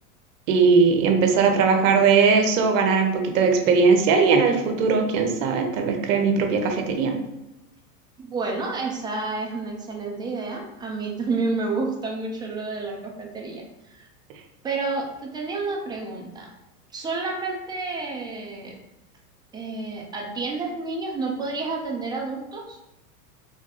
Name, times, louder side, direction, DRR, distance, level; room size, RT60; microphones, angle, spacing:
voice 1, 0.5-7.1, right 5 dB, 55° right, 4 dB, 0.9 m, -19 dB
voice 2, 8.2-14.1 14.6-16.5 16.9-18.8 19.5-22.8, right 3 dB, 10° right, 0 dB, 0.4 m, -30 dB
3.5 x 2.5 x 4.0 m, 0.97 s
hypercardioid pair, 100°, 47 cm